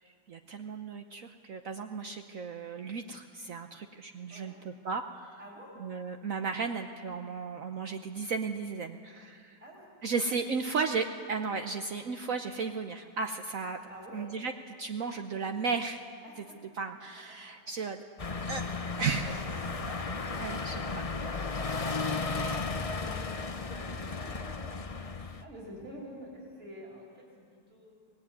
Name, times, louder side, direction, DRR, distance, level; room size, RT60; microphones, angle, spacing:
voice 1, 0.3-5.4 5.8-9.6 10.0-13.8 14.1-14.5 14.8-16.0 16.8-18.0 18.5-18.6 19.0-19.7 20.4-20.8, right 4 dB, 60° right, 6 dB, 1.2 m, -35 dB
voice 2, 5.4-5.8 9.1-9.2 9.6-10.5 13.8-14.3 16.2-16.6 17.3-17.6 19.5-28.0, right 1 dB, 40° right, -2 dB, 5.0 m, -49 dB
sound 1, 18.2-25.4, left 4 dB, 30° left, 0.7 m, -34 dB
25.0 x 19.5 x 9.5 m, 2.2 s
omnidirectional pair, 1.8 m